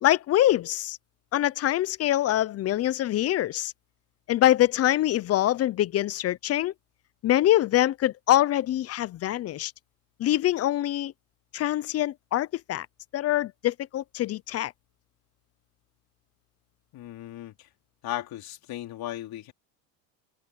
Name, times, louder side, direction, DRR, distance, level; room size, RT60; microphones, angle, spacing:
voice 1, 0.0-1.0 1.3-3.7 4.3-6.7 7.2-9.7 10.2-11.1 11.5-12.9 13.1-14.7, left 13 dB, 35° left, 0.6 m, -24 dB
voice 2, 16.9-17.7 18.0-19.5, left 14 dB, 50° left, 4.0 m, -36 dB
supercardioid pair, 125°, 46 cm